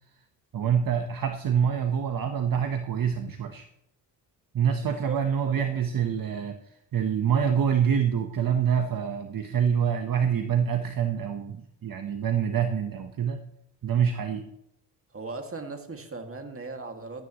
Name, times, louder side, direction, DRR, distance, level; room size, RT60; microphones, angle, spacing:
voice 1, 0.5-3.6 4.5-6.5 6.9-13.4 13.8-14.4, right 8 dB, 50° right, 6 dB, 1.2 m, -26 dB
voice 2, 4.7-5.8 15.1-17.3, right 3 dB, 30° right, 4 dB, 2.2 m, -38 dB
16.0 x 12.5 x 3.1 m, 0.78 s
cardioid pair, 75°, 44 cm